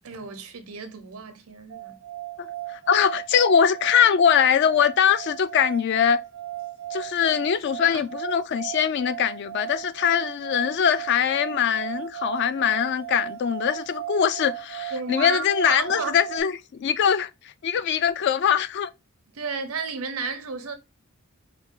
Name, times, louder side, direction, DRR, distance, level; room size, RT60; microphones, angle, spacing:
voice 1, 0.0-1.9 7.8-8.0 14.9-16.2 19.3-20.7, right 4 dB, 90° right, 0.8 m, -33 dB
sound 1, 1.7-16.4, right 15 dB, 65° right, 0.4 m, -36 dB
voice 2, 2.4-6.2 6.9-17.3 17.6-18.9, left 8 dB, 55° left, 0.3 m, -22 dB
4.2 x 2.3 x 3.6 m
head